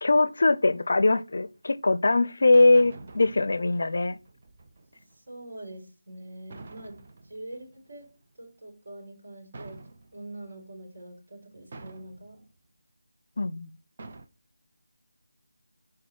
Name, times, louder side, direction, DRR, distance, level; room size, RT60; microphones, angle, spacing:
voice 1, 0.0-4.2 13.4-13.7, left 2 dB, 50° left, 0.5 m, -22 dB
sound 1, 1.3-1.6 2.5-5.2 6.5-8.2 9.5-10.5 11.7-12.4 14.0-14.3, right 3 dB, 30° right, 0.7 m, -47 dB
voice 2, 5.1-8.1 8.4-9.8 10.1-12.4, right 1 dB, 55° right, 4.4 m, -44 dB
7.1 x 4.9 x 4.6 m
figure-of-eight pair, 175°, 0 cm